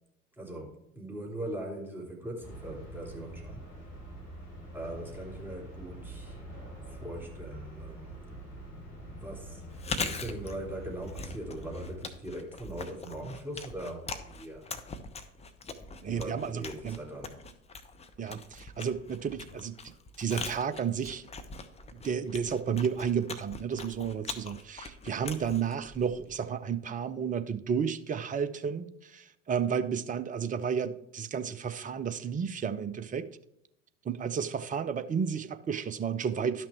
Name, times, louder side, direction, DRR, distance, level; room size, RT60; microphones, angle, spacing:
voice 1, 0.4-3.6 4.7-6.4 6.9-8.2 9.2-14.7 16.1-17.4, right 1 dB, 5° right, 3.4 m, -40 dB
sound 1, 2.4-12.0, equal, 40° left, 4.4 m, -45 dB
Chewing mastication, 9.7-26.5, left 4 dB, 15° left, 1.0 m, -42 dB
voice 2, 16.0-17.0 18.2-21.3 21.9-33.3 34.0-36.7, right 7 dB, 20° right, 0.7 m, -32 dB
11.5 x 6.0 x 4.5 m
figure-of-eight pair, 75°, 38 cm